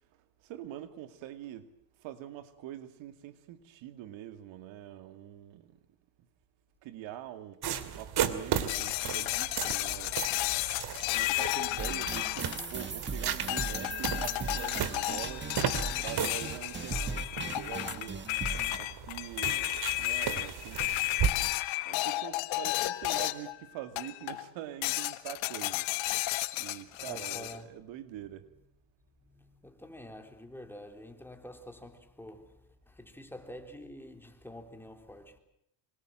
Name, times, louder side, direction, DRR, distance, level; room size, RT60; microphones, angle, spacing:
voice 1, 0.4-1.7 2.0-5.8 6.8-7.6 8.0-10.2 11.1-15.5 16.0-18.3 18.7-19.7 20.0-20.8 21.8-28.5, right 12 dB, 75° right, 2.4 m, -44 dB
sound 1, 7.6-21.3, right 9 dB, 55° right, 2.7 m, -36 dB
sound 2, 8.7-13.1 13.5-23.6 24.0-24.5 24.8-27.6, left 19 dB, 75° left, 1.6 m, -33 dB
sound 3, 11.8-18.8, right 4 dB, 25° right, 1.8 m, -38 dB
voice 2, 27.0-27.7 29.2-35.4, left 1 dB, 5° left, 3.7 m, -48 dB
26.0 x 24.5 x 7.7 m
supercardioid pair, 100°, 46 cm